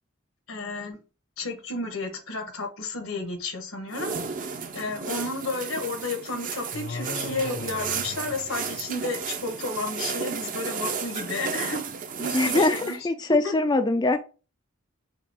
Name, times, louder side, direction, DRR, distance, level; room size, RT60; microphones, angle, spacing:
voice 1, 0.5-1.0 1.4-4.1 4.7-11.8 12.2-13.0 13.3-13.5, left 3 dB, 85° left, 1.3 m, -32 dB
sound 1, 3.9-13.0, right 5 dB, 40° right, 0.6 m, -33 dB
sound 2, 6.7-9.2, left 3 dB, 55° left, 0.6 m, -38 dB
voice 2, 12.3-14.2, left 2 dB, 20° left, 0.3 m, -23 dB
5.8 x 2.4 x 3.5 m
head